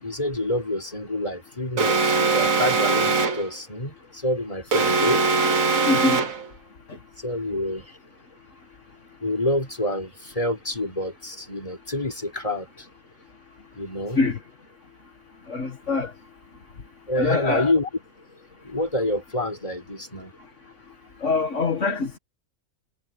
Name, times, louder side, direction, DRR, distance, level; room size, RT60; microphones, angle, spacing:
voice 1, 0.0-5.2 7.2-8.0 9.2-12.9 13.8-14.2 17.1-17.9 18.6-20.3, left 1 dB, 25° left, 4.2 m, -27 dB
Alarm, 1.8-3.5 4.7-6.5, right 4 dB, 85° right, 1.9 m, -21 dB
voice 2, 5.9-6.2 14.2-14.4 15.5-16.1 17.2-17.7 21.2-22.2, left 4 dB, 65° left, 2.1 m, -24 dB
omnidirectional pair, 1.4 m